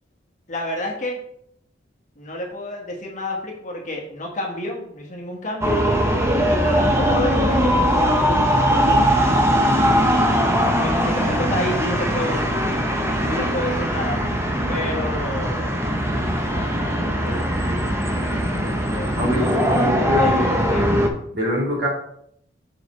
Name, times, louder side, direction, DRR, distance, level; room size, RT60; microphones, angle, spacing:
voice 1, 0.5-1.2 2.2-5.8 6.5-8.4 8.7-9.0 10.8-12.4 13.2-14.2 14.6-15.7 16.5-19.6 20.2-21.0, left 1 dB, 40° left, -1 dB, 1.4 m, -30 dB
sound 1, 5.6-21.1, equal, 15° right, 0.7 m, -20 dB
voice 2, 19.2-20.5 21.3-21.9, left 1 dB, 60° right, -3 dB, 2.2 m, -24 dB
6.7 x 5.0 x 3.1 m, 0.70 s
head